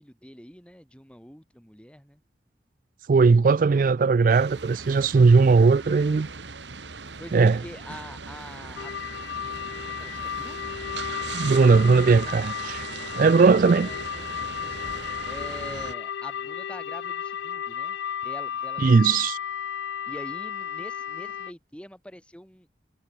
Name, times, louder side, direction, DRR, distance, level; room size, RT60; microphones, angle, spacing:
voice 1, 0.0-2.2 7.2-9.0 9.8-10.8 11.8-12.4 13.3-14.3 14.6-14.9 15.2-18.0 18.2-19.3 20.1-22.7, equal, 5° left, 5.0 m, -44 dB
voice 2, 3.1-6.3 7.3-7.6 11.3-12.8 13.2-13.9 18.8-19.4, right 4 dB, 45° right, 0.3 m, -18 dB
sound 1, 4.3-15.9, right 4 dB, 75° right, 1.9 m, -39 dB
sound 2, 8.8-21.5, left 9 dB, 75° left, 0.3 m, -34 dB
head